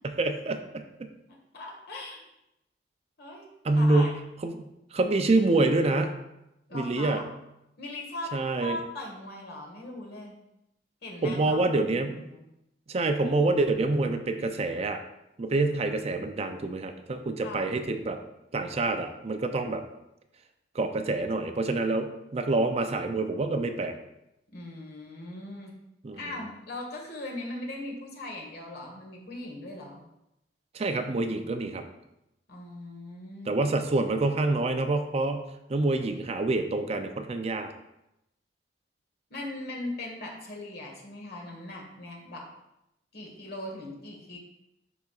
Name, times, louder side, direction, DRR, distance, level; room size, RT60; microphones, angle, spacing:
voice 1, 0.0-1.1 3.6-4.6 4.9-6.1 6.7-7.2 8.3-8.8 11.2-12.2 12.9-15.0 15.4-18.2 18.5-19.8 20.7-23.9 26.0-26.2 30.7-31.9 33.5-37.7, right 2 dB, 35° right, 7 dB, 0.4 m, -27 dB
voice 2, 1.3-2.2 3.2-3.5 3.7-4.1 6.7-7.3 7.8-10.4 11.0-12.4 17.4-17.7 24.5-25.7 26.2-30.0 32.5-33.5 39.3-42.5 43.1-44.4, left 1 dB, 60° left, 0 dB, 1.4 m, -39 dB
10.5 x 3.9 x 2.4 m, 0.86 s
head